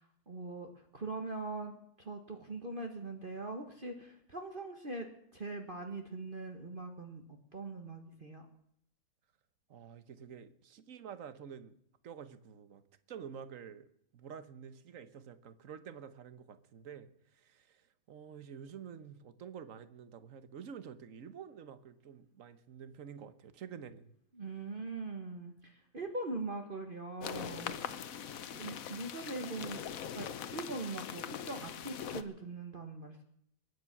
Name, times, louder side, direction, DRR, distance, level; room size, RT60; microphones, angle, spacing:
voice 1, 0.3-1.7 2.0-5.1 5.3-7.2 7.5-8.5 24.4-27.8 28.5-29.9 30.1-33.2, right 3 dB, 35° right, 4 dB, 1.5 m, -41 dB
voice 2, 9.7-11.7 12.0-12.8 13.1-24.1, right 7 dB, 60° right, 13 dB, 1.3 m, -49 dB
sound 1, 27.2-32.2, left 8 dB, 65° left, 1.3 m, -42 dB
22.5 x 9.6 x 6.0 m, 0.72 s
omnidirectional pair, 1.6 m